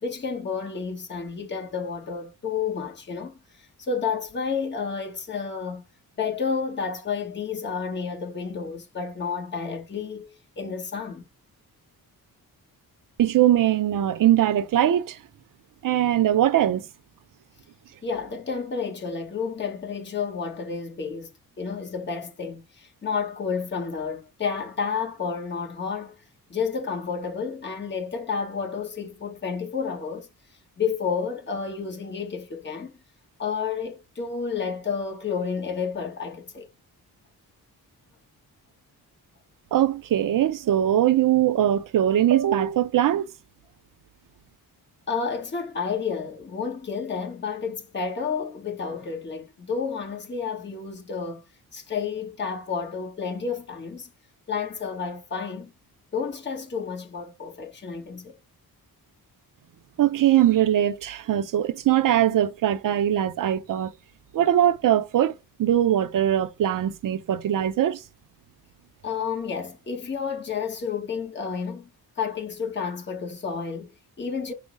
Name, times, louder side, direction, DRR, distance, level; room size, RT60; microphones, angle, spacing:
voice 1, 0.0-5.8 6.2-11.2 18.0-26.2 26.5-30.3 30.8-32.9 33.4-36.7 45.1-51.4 51.7-54.1 54.5-55.7 56.1-58.3 69.0-71.9 72.2-74.5, left 5 dB, 30° left, 1.0 m, -31 dB
voice 2, 13.2-15.2 15.8-16.8 39.7-43.2 60.0-63.9 64.3-68.0, right 11 dB, 55° right, 0.5 m, -21 dB
5.4 x 2.0 x 3.6 m
wide cardioid pair, 160°, 38 cm